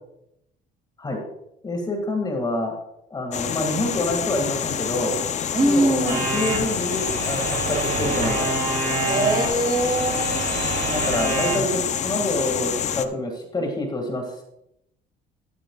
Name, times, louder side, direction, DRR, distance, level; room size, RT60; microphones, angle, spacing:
voice 1, 1.6-2.7 3.1-5.2 5.6-8.5 10.9-14.4, left 1 dB, 25° left, 3 dB, 2.0 m, -27 dB
sound 1, 3.3-13.1, left 8 dB, 45° left, 0.6 m, -27 dB
voice 2, 5.5-6.2 9.0-10.4, right 2 dB, 25° right, 2 dB, 2.8 m, -22 dB
sound 2, 6.1-11.6, right 5 dB, 70° right, 3.1 m, -28 dB
12.0 x 9.6 x 2.3 m, 0.81 s
cardioid pair, 110°, 17 cm